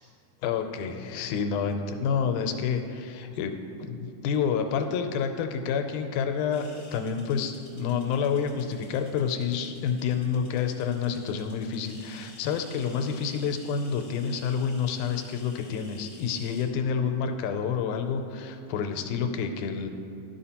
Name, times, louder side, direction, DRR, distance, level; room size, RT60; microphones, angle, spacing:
voice 1, 0.4-3.5 3.8-19.9, left 6 dB, 85° left, 6 dB, 2.0 m, -29 dB
sound 1, 6.5-16.7, left 2 dB, 45° left, 1.4 m, -53 dB
12.5 x 5.5 x 2.9 m, 2.5 s
omnidirectional pair, 3.5 m